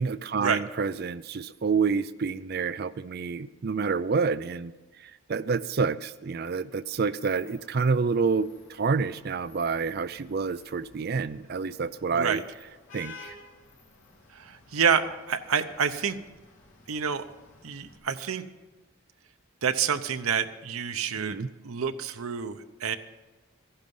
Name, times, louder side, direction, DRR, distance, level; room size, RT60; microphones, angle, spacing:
voice 1, 0.0-4.7 5.0-12.4 12.9-13.4 21.2-21.5, right 5 dB, 45° right, 14 dB, 0.4 m, -28 dB
Vehicle horn car horn honking / Traffic noise roadway noise, 6.8-18.0, left 3 dB, 75° left, 3.2 m, -53 dB
voice 2, 14.3-16.2 16.9-17.3 17.6-18.5 19.6-23.0, right 7 dB, 85° right, 9 dB, 0.7 m, -28 dB
14.5 x 11.5 x 5.4 m, 1.2 s
head